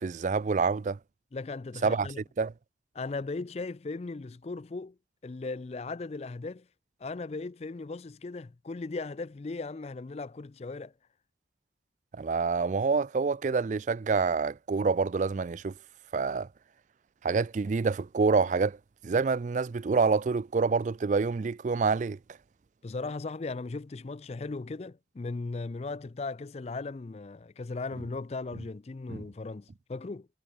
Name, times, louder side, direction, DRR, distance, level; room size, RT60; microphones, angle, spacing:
voice 1, 0.0-1.0 1.8-2.1 2.4-2.5 12.2-15.7 16.1-16.5 17.2-18.8 19.0-22.2 29.1-29.2, right 4 dB, 40° right, 0.4 m, -27 dB
voice 2, 1.3-2.2 2.9-5.0 5.2-6.7 7.0-10.9 22.8-30.3, left 3 dB, 35° left, 0.4 m, -37 dB
head